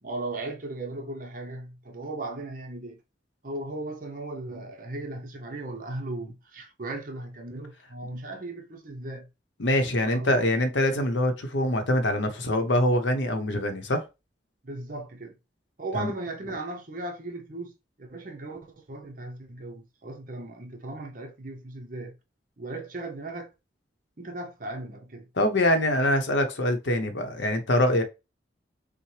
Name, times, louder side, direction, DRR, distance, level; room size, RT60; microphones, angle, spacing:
voice 1, 0.0-3.0 3.4-9.3 9.8-10.5 14.6-15.4 15.8-22.2 22.6-23.5 24.2-25.3, right 2 dB, 45° right, 0.8 m, -37 dB
voice 2, 9.6-14.0 15.9-16.1 25.4-28.0, left 1 dB, 75° left, 0.8 m, -24 dB
5.6 x 2.1 x 3.2 m
head